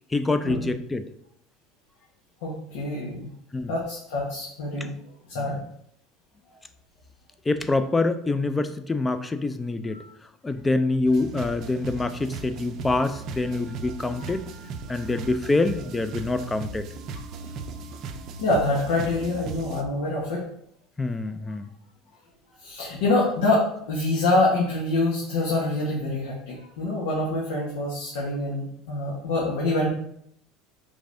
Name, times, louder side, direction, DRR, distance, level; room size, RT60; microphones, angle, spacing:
voice 1, 0.1-1.1 3.5-3.7 5.3-5.5 7.5-10.0 10.4-14.5 14.9-16.9 21.0-21.7, left 2 dB, 15° left, 11 dB, 0.4 m, -25 dB
voice 2, 2.4-3.3 3.7-4.9 5.3-5.6 9.9-10.1 15.0-15.1 18.4-20.4 22.6-29.9, left 2 dB, 85° left, -4 dB, 1.1 m, -25 dB
sound 1, 11.0-19.8, right 4 dB, 50° right, 0.5 m, -37 dB
5.2 x 3.5 x 2.6 m, 0.71 s
supercardioid pair, 105°, 0 cm